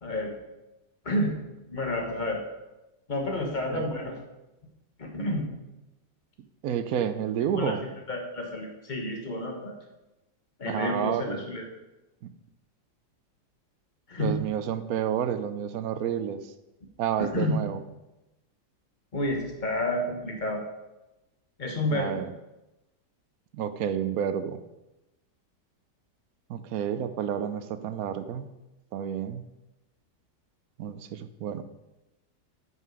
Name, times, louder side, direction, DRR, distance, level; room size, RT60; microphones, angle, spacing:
voice 1, 0.0-0.4 1.0-1.4 1.7-2.4 3.1-4.2 5.0-5.5 7.5-7.7 8.1-9.7 10.6-11.6 14.1-14.4 17.2-17.6 19.1-20.6 21.6-22.2, left 1 dB, 30° left, 2 dB, 1.3 m, -30 dB
voice 2, 6.6-7.8 10.7-11.5 12.2-12.3 14.2-16.5 17.0-17.8 21.9-22.3 23.5-24.6 26.5-28.5 28.9-29.4 30.8-31.6, right 9 dB, 70° right, 11 dB, 1.0 m, -30 dB
9.9 x 5.7 x 4.8 m, 0.99 s
omnidirectional pair, 1.8 m